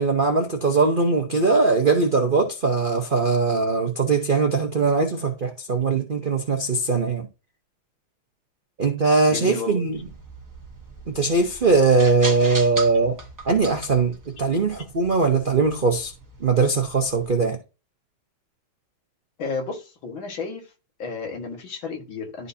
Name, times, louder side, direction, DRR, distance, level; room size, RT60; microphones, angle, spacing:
voice 1, 0.0-7.3 8.8-10.0 11.1-13.2 13.4-16.1 16.4-17.6, right 4 dB, 55° right, 0.5 m, -21 dB
voice 2, 9.3-9.8 19.4-20.7 21.0-22.5, left 4 dB, 70° left, 2.3 m, -32 dB
sound 1, 9.9-17.3, right 3 dB, 15° right, 0.7 m, -39 dB
12.0 x 4.1 x 2.7 m
omnidirectional pair, 2.3 m